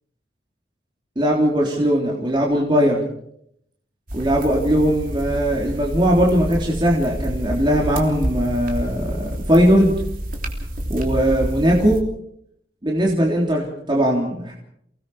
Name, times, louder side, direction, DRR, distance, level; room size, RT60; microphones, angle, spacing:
voice 1, 1.2-3.1 4.1-10.0 10.9-12.0 12.8-14.5, equal, 25° right, -2 dB, 3.5 m, -19 dB
sound 1, 4.1-12.0, equal, 50° right, 3.2 m, -28 dB
29.0 x 19.0 x 5.0 m, 0.72 s
head